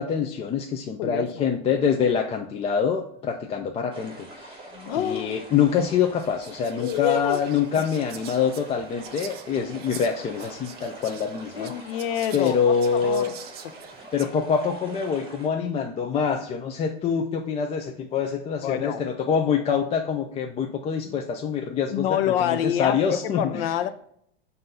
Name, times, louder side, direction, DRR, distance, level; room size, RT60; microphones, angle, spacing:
voice 1, 0.0-4.7 4.9-11.7 12.3-13.3 14.1-23.6, left 7 dB, 20° left, 0.4 m, -25 dB
voice 2, 1.0-1.4 4.7-5.4 6.8-7.4 11.5-13.4 18.6-19.0 21.9-23.9, left 10 dB, 70° left, 0.7 m, -27 dB
sound 1, 3.9-15.5, right 1 dB, 15° right, 2.3 m, -44 dB
Whispering, 5.6-5.7 6.2-14.3, right 8 dB, 35° right, 0.7 m, -45 dB
7.6 x 2.7 x 5.4 m
supercardioid pair, 135°, 30 cm